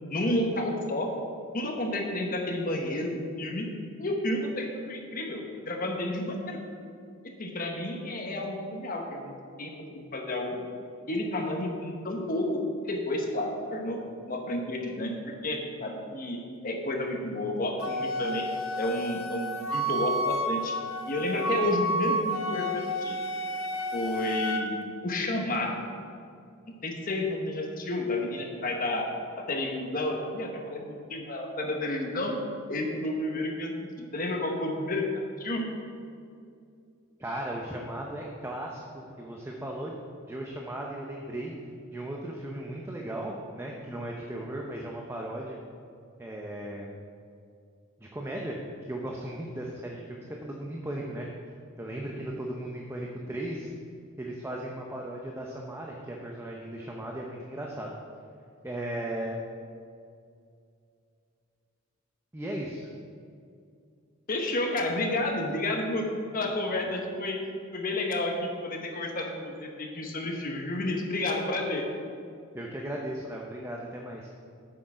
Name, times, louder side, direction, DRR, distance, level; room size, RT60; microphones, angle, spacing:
voice 1, 0.1-1.1 1.5-3.7 4.0-6.6 7.2-10.6 11.1-14.0 14.3-18.5 18.8-20.7 21.1-23.2 23.9-25.9 26.7-29.1 29.4-32.4 32.7-33.7 34.0-35.7 64.3-66.1 66.3-67.4 67.7-71.9, left 1 dB, 40° left, 2 dB, 1.0 m, -31 dB
Wind instrument woodwind instrument, 17.8-24.6, equal, 70° left, 0.7 m, -31 dB
voice 2, 37.2-39.9 40.3-41.5 41.9-45.6 46.2-46.9 48.0-48.6 48.9-51.3 51.8-53.7 54.2-57.9 58.6-59.4 62.3-62.9 72.5-74.3, right 1 dB, 10° right, -1 dB, 0.6 m, -36 dB
7.7 x 6.4 x 4.9 m, 2.4 s
head